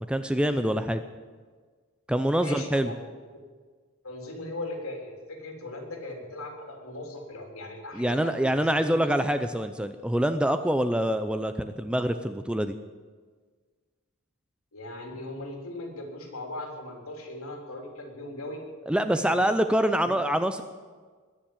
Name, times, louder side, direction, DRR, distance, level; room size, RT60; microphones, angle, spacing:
voice 1, 0.1-1.0 2.1-2.9 7.9-12.7 18.9-20.6, right 1 dB, 5° right, 9 dB, 0.5 m, -25 dB
voice 2, 2.4-3.0 4.0-8.9 14.7-18.6 19.1-19.6 20.0-20.1, left 2 dB, 85° left, 2 dB, 3.5 m, -39 dB
20.5 x 7.2 x 9.0 m, 1.5 s
head